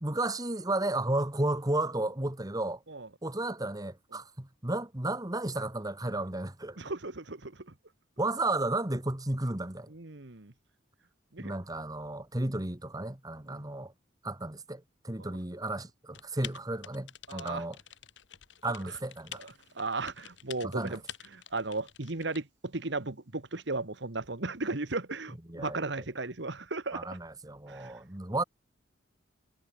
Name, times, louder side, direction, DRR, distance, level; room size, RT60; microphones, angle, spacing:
voice 1, 0.0-2.8 3.2-6.8 8.2-9.9 11.4-13.9 14.2-17.8 18.6-19.4 20.6-21.0 25.5-25.8 26.9-28.4, right 2 dB, 20° right, 1.6 m, -33 dB
voice 2, 6.8-7.7 9.9-10.5 11.3-11.5 13.5-13.6 15.2-15.4 17.3-17.6 19.4-21.0 21.3-27.2 27.7-27.9, right 3 dB, 65° right, 1.6 m, -36 dB
Typing, 16.1-22.4, left 10 dB, 70° left, 1.9 m, -48 dB
head